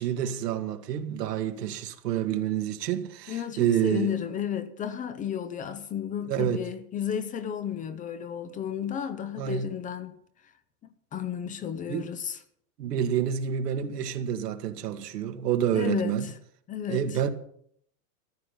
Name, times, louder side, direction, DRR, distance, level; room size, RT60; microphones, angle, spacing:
voice 1, 0.0-4.1 6.2-6.6 9.4-9.7 11.9-12.1 12.8-16.3 16.9-17.3, right 9 dB, 90° right, 2.0 m, -28 dB
voice 2, 3.3-10.2 11.1-12.4 15.7-16.3 16.7-17.2, left 9 dB, 15° left, 0.6 m, -33 dB
14.5 x 11.5 x 5.6 m
supercardioid pair, 145°, 47 cm